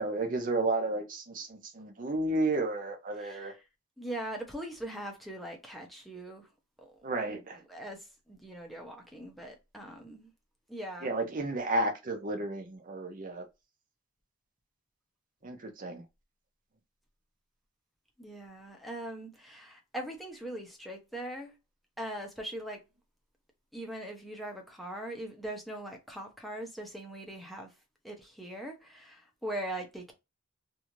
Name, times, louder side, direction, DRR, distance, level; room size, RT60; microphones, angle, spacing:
voice 1, 0.0-3.5 7.0-7.6 11.0-13.4 15.4-16.0, right 2 dB, 40° right, 0.7 m, -32 dB
voice 2, 3.2-3.6 4.0-6.5 6.8-6.9 7.3-10.3 10.7-11.2 18.2-21.5 22.0-22.8 23.7-27.7 28.0-30.1, right 1 dB, ahead, 0.7 m, -41 dB
2.7 x 2.5 x 2.9 m
head